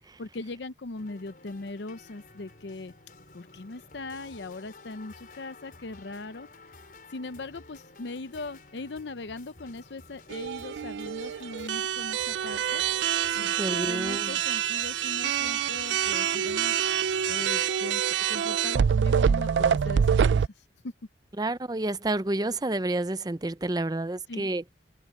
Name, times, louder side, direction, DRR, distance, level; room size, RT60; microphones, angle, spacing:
voice 1, 0.2-2.9 3.3-6.5 7.1-12.8 13.3-16.8 17.3-20.9 24.3-24.5, left 2 dB, 70° left, 0.7 m, -40 dB
sound 1, 1.0-17.7, left 3 dB, 50° left, 5.2 m, -52 dB
sound 2, 10.3-20.5, right 8 dB, 80° right, 0.4 m, -26 dB
voice 2, 13.6-14.3 21.4-24.6, right 2 dB, 20° right, 0.6 m, -29 dB
open air
head